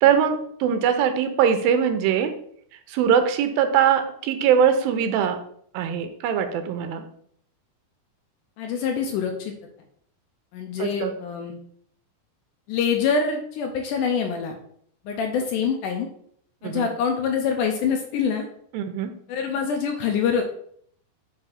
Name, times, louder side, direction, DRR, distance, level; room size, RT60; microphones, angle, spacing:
voice 1, 0.0-2.3 2.9-5.4 5.7-7.1 10.8-11.1 16.6-16.9 18.7-19.1, right 8 dB, 90° right, 8 dB, 2.5 m, -21 dB
voice 2, 8.6-9.5 10.5-11.5 12.7-14.6 15.1-16.1 16.6-18.5 19.3-20.4, left 6 dB, 75° left, 3 dB, 2.0 m, -25 dB
7.8 x 2.7 x 5.7 m, 0.64 s
omnidirectional pair, 4.2 m